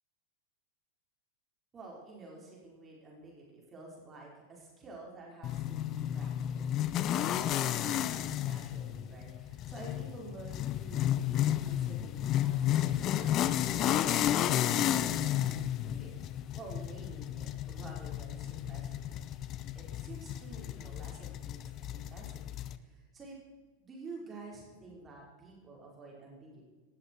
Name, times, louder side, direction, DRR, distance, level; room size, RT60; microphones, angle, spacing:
voice 1, 1.7-19.2 19.7-23.4 23.8-26.6, right 3 dB, 20° right, -2 dB, 4.9 m, -50 dB
sound 1, 5.4-22.8, left 11 dB, 35° left, 0.7 m, -32 dB
18.5 x 13.0 x 4.7 m, 1.3 s
figure-of-eight pair, 90°, 0 cm